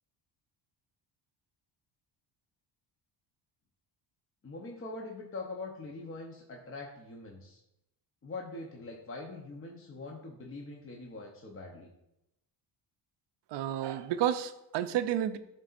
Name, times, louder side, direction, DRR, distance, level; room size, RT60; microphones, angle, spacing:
voice 1, 4.4-7.6 8.2-11.9, left 3 dB, 30° left, 0 dB, 0.8 m, -43 dB
voice 2, 13.5-15.4, right 10 dB, 65° right, 11 dB, 0.6 m, -31 dB
12.0 x 4.0 x 2.5 m, 0.85 s
cardioid pair, 135°, 46 cm